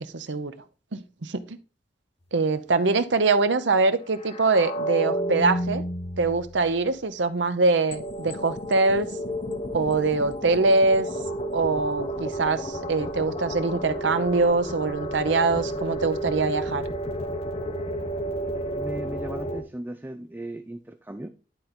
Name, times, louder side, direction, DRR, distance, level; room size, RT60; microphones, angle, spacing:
voice 1, 0.1-0.5 0.9-1.6 2.3-5.8 6.2-9.1 9.7-11.1 11.5-16.8, right 3 dB, 85° right, 11 dB, 0.8 m, -23 dB
sound 1, 4.2-6.9 7.9-19.6, right 1 dB, 35° left, 0.9 m, -31 dB
voice 2, 18.7-21.3, right 1 dB, 10° right, 7 dB, 0.5 m, -37 dB
11.0 x 3.9 x 4.4 m, 0.34 s
head